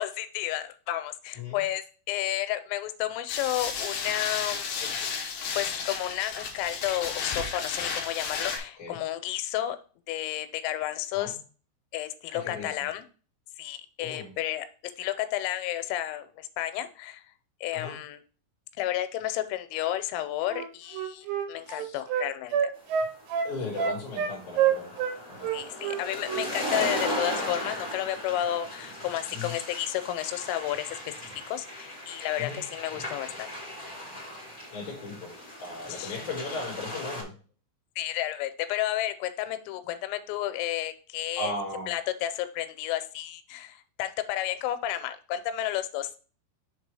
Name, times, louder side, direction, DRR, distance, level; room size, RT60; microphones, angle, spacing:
voice 1, 0.0-5.0 5.5-9.8 10.1-11.4 11.9-13.1 13.6-14.7 15.0-17.2 17.6-18.2 18.8-22.7 25.5-33.5 35.9-36.2 38.0-41.5 41.9-46.2, left 13 dB, 90° left, 10 dB, 3.2 m, -32 dB
sound 1, 3.3-8.6, left 6 dB, 70° left, 2.3 m, -33 dB
voice 2, 12.3-12.7 14.0-14.3 17.7-17.9 21.7-22.0 23.4-24.9 25.3-25.5 29.3-29.5 32.4-32.6 34.7-37.3 41.4-41.9, left 3 dB, 40° left, -5 dB, 2.0 m, -36 dB
Wind instrument woodwind instrument, 20.5-25.2 25.4-26.5 26.7-26.9, right 8 dB, 85° right, 3.5 m, -28 dB
sound 2, 23.0-37.2, left 1 dB, 5° left, 0.7 m, -37 dB
7.1 x 3.3 x 4.7 m, 0.38 s
omnidirectional pair, 5.9 m